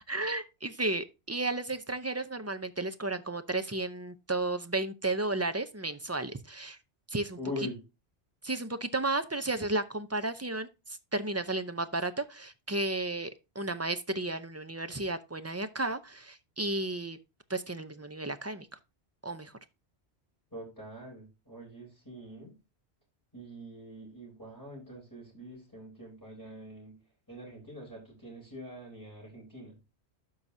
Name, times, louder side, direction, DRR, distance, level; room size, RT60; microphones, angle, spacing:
voice 1, 0.1-6.8 7.1-7.4 8.4-17.2 17.5-18.7 19.2-19.5, right 2 dB, 20° right, 0.4 m, -33 dB
voice 2, 7.4-7.8 20.5-22.6 23.3-27.0 27.3-29.8, left 1 dB, 15° left, 3.7 m, -43 dB
12.5 x 4.8 x 2.7 m
omnidirectional pair, 1.1 m